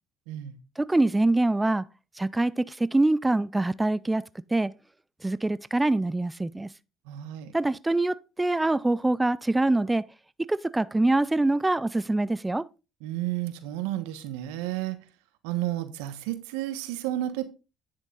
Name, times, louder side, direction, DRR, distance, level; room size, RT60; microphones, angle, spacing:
voice 1, 0.8-1.8 2.2-4.2 4.5-4.7 5.2-6.7 7.5-10.0 10.5-12.6, right 2 dB, 15° right, 0.4 m, -24 dB
voice 2, 7.1-7.5 13.0-15.0 15.4-17.4, right 14 dB, 85° right, 1.2 m, -31 dB
10.0 x 6.5 x 3.9 m
supercardioid pair, 75°, 0 cm